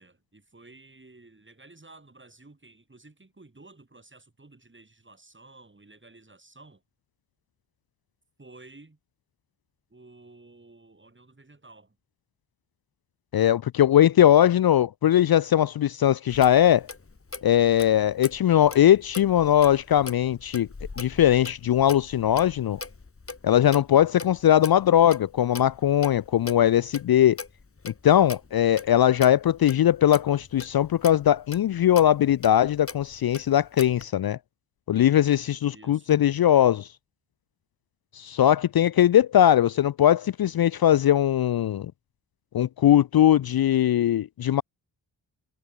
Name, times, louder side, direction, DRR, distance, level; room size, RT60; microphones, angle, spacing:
voice 1, 0.0-6.8 8.4-9.0 9.9-12.0 35.7-36.1, right 2 dB, 25° right, 4.3 m, -52 dB
voice 2, 13.3-16.9 17.4-20.7 21.0-22.8 23.4-27.4 27.8-34.4 34.9-36.9 38.1-41.9 42.5-44.6, left 11 dB, 55° left, 0.5 m, -20 dB
Clock, 16.3-34.1, left 4 dB, 30° left, 1.9 m, -42 dB
cardioid pair, 55°, 44 cm